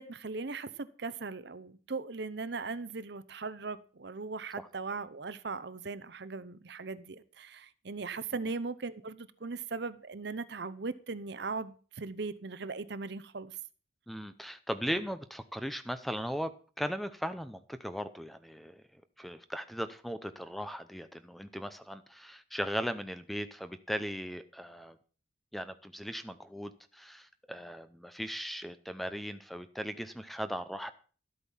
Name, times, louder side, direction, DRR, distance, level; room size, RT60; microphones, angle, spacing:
voice 1, 0.0-13.5, right 4 dB, 55° right, 0.7 m, -39 dB
voice 2, 14.1-18.8 19.2-25.0 25.5-30.9, equal, ahead, 0.6 m, -38 dB
13.0 x 8.3 x 5.5 m
head